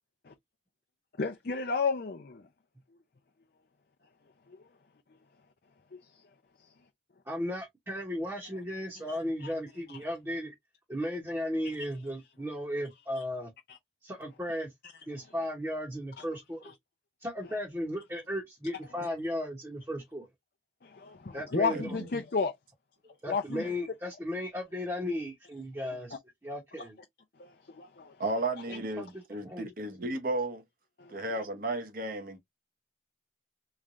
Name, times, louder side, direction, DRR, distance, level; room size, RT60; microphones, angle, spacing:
voice 1, 1.2-2.5 4.5-4.6 6.1-6.2 6.6-6.7 9.0-9.5 9.9-10.0 13.2-13.3 13.7-13.8 15.2-15.3 16.2-16.3 16.6-16.7 17.4-17.5 18.9-19.1 20.8-22.5 23.3-23.7 25.8-25.9 26.8-26.9 27.4-28.2 28.7-28.8 31.0-31.4, left 4 dB, 55° left, 0.6 m, -34 dB
voice 2, 7.3-10.5 10.9-13.5 14.0-14.7 15.1-16.7 17.2-20.3 21.3-21.9 23.2-26.2 26.4-27.0 28.7-29.1 29.4-29.7, left 1 dB, 15° right, 1.0 m, -35 dB
voice 3, 21.7-22.1 28.2-30.6 31.1-32.4, right 2 dB, 50° right, 0.9 m, -34 dB
3.6 x 3.2 x 2.6 m
head